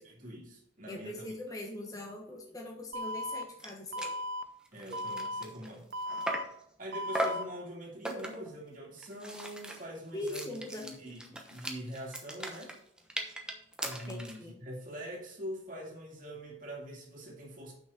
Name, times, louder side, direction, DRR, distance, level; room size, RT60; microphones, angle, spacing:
voice 1, 0.0-1.3 4.7-5.9 6.8-12.7 13.8-17.7, equal, 40° right, -1 dB, 2.4 m, -44 dB
voice 2, 0.9-4.1 10.1-10.8 14.1-14.6, left 1 dB, 15° left, -1 dB, 1.2 m, -41 dB
Alarm, 2.9-3.4 3.9-4.4 4.9-5.4 5.9-6.4 6.9-7.4, left 1 dB, 60° right, 0.6 m, -36 dB
sound 1, 3.3-3.4 3.6-3.7 4.0-4.2 4.6-6.6 7.1-7.5 8.0-8.5 9.0-14.4, right 1 dB, 5° right, 1.0 m, -38 dB
6.3 x 5.9 x 6.7 m, 0.75 s
head